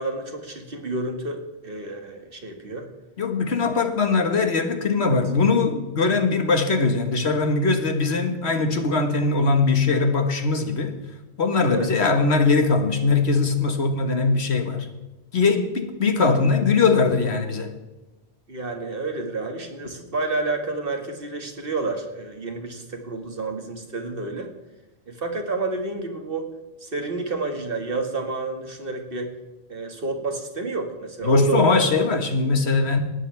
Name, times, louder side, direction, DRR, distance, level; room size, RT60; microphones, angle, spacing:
voice 1, 0.0-2.9 3.5-3.8 11.7-11.9 18.5-24.5 25.1-26.5 26.8-29.3 29.7-31.9, right 3 dB, 60° right, 4 dB, 2.2 m, -29 dB
voice 2, 3.2-11.0 11.4-14.9 15.3-17.7 31.2-33.0, left 4 dB, 80° left, 6 dB, 1.8 m, -21 dB
19.0 x 13.0 x 3.5 m, 1.1 s
omnidirectional pair, 1.1 m